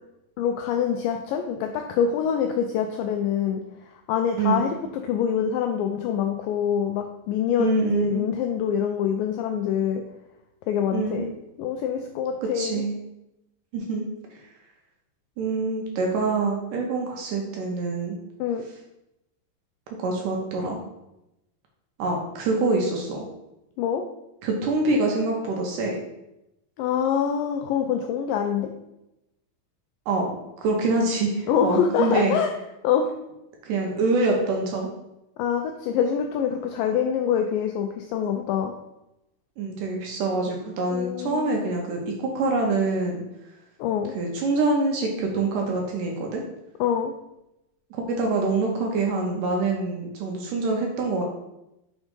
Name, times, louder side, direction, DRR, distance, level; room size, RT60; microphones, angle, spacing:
voice 1, 0.4-3.6 4.1-4.7 5.0-10.0 10.7-11.3 11.6-12.8 18.4-18.6 23.8-24.0 26.8-28.7 31.5-32.5 32.8-33.1 35.4-38.7 40.9-41.6 43.8-44.1 46.8-47.1, left 8 dB, 85° left, 4 dB, 2.0 m, -25 dB
voice 2, 7.6-8.3 10.9-11.3 12.5-13.0 13.7-14.1 14.3-14.4 15.4-18.2 20.0-20.8 22.0-23.3 24.4-26.0 30.1-30.3 30.6-32.4 33.6-34.9 39.6-43.2 44.1-46.4 47.9-51.2, right 3 dB, 75° right, 0 dB, 2.1 m, -25 dB
6.2 x 3.6 x 5.2 m, 0.89 s
omnidirectional pair, 4.4 m